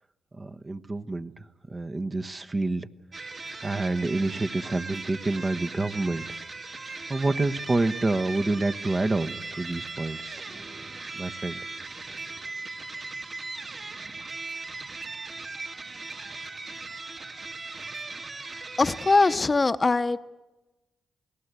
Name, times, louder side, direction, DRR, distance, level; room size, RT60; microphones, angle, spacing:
voice 1, 0.3-2.9 3.6-6.2 7.1-10.4 11.1-11.6, right 2 dB, 30° right, 8 dB, 1.1 m, -28 dB
sound 1, 3.1-19.4, right 3 dB, 50° right, 2.6 m, -38 dB
voice 2, 18.8-20.2, left 3 dB, 35° left, 11 dB, 0.9 m, -21 dB
28.5 x 18.0 x 8.3 m, 1.1 s
cardioid pair, 60°, 0 cm